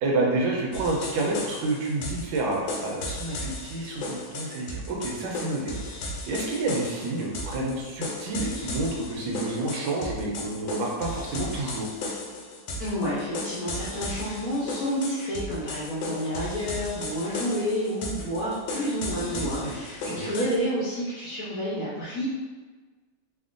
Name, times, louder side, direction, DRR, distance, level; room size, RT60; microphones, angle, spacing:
voice 1, 0.0-5.7 6.3-11.9 19.2-19.7 20.0-20.3, right 2 dB, 85° right, -1 dB, 1.4 m, -29 dB
sound 1, 0.7-20.6, left 1 dB, 85° left, 1.3 m, -35 dB
voice 2, 12.8-22.3, equal, 70° left, -8 dB, 0.9 m, -29 dB
3.4 x 2.1 x 2.4 m, 1.3 s
omnidirectional pair, 2.1 m